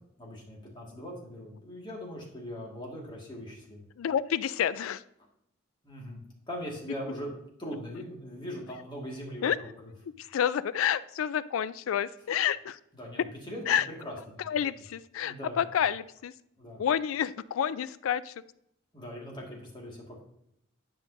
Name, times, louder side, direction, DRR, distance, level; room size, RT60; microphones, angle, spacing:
voice 1, 0.2-3.8 5.8-6.2 6.5-7.3 7.6-9.9 13.0-14.4 15.2-15.6 16.6-16.8 18.9-20.2, equal, 25° left, -3 dB, 1.9 m, -40 dB
voice 2, 4.0-5.0 9.4-9.6 10.2-12.8 13.7-13.9 14.4-16.3 16.8-18.3, left 9 dB, 90° left, 17 dB, 0.3 m, -29 dB
10.5 x 5.2 x 2.7 m, 0.76 s
head